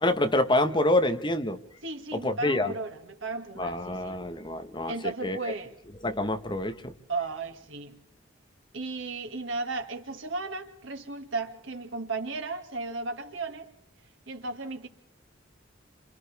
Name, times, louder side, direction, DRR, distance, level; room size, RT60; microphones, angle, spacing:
voice 1, 0.0-1.6 2.1-2.7 3.6-4.9 5.2-5.4 6.0-6.9, left 1 dB, 25° left, 1.3 m, -26 dB
voice 2, 1.8-4.2 4.9-5.7 7.1-8.0 8.7-13.7 14.3-14.9, right 3 dB, 80° right, 2.3 m, -35 dB
29.5 x 27.5 x 3.5 m
head